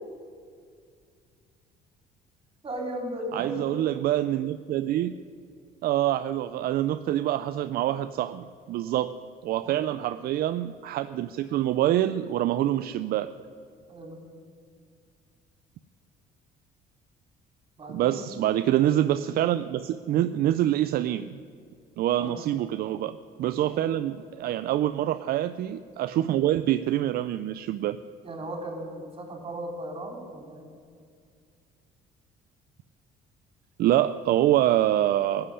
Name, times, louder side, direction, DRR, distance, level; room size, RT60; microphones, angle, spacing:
voice 1, 2.6-3.8 9.6-9.8 13.9-14.3 17.8-18.3 22.2-22.5 23.7-24.0 28.2-30.7, right 1 dB, 30° right, 2 dB, 3.9 m, -37 dB
voice 2, 3.3-5.1 5.8-9.1 9.4-13.3 17.9-21.4 22.0-28.0 33.8-35.5, right 12 dB, 65° right, 11 dB, 0.5 m, -26 dB
15.5 x 7.9 x 9.9 m, 2.2 s
cardioid pair, 110°, 17 cm